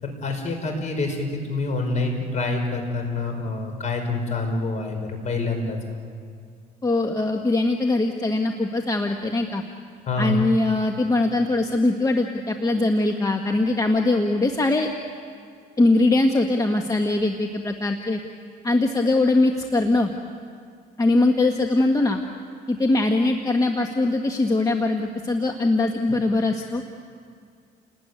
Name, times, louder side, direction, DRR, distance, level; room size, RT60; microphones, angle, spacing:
voice 1, 0.0-5.8 10.1-10.4, left 3 dB, 45° left, 4 dB, 5.4 m, -26 dB
voice 2, 6.8-9.6 10.2-14.9 15.8-18.2 18.6-20.1 21.0-22.2 22.7-26.8, left 2 dB, 20° left, 4 dB, 1.5 m, -21 dB
29.5 x 19.5 x 9.7 m, 2.2 s
cardioid pair, 110°, 17 cm